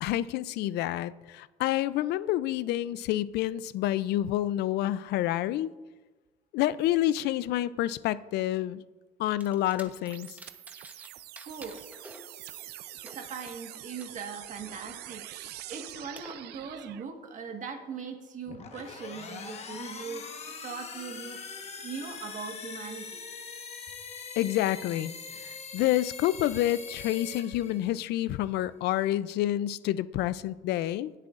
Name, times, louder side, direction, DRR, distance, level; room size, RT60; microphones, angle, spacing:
voice 1, 0.0-5.7 6.5-8.8 9.2-10.4 24.4-31.1, left 13 dB, 75° left, 17 dB, 0.4 m, -28 dB
sound 1, 9.4-11.1 11.4-14.1 14.5-16.4, right 1 dB, 10° right, 0.9 m, -51 dB
sound 2, 10.1-17.1, right 14 dB, 75° right, 0.5 m, -45 dB
voice 2, 11.5-11.8 13.1-20.3 20.6-21.5 21.8-23.2, right 5 dB, 50° right, 4 dB, 1.5 m, -40 dB
sound 3, 18.4-28.2, left 5 dB, 40° left, 1.2 m, -42 dB
17.5 x 7.6 x 2.5 m, 1.2 s
cardioid pair, 110°, 17 cm